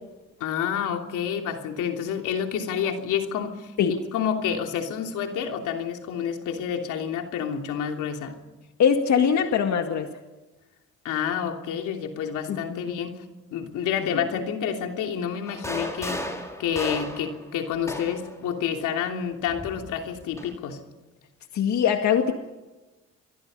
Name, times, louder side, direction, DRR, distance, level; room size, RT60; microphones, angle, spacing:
voice 1, 0.4-8.4 11.0-13.2 13.5-16.3 16.6-20.8, left 8 dB, 85° left, 3 dB, 3.1 m, -29 dB
voice 2, 8.8-10.1 12.5-13.0 14.1-14.2 21.5-22.3, left 7 dB, 65° left, 5 dB, 2.1 m, -22 dB
sound 1, 15.5-18.4 19.5-20.6, equal, 10° left, 5.5 m, -35 dB
29.0 x 23.5 x 5.5 m, 1.1 s
cardioid pair, 90°, 30 cm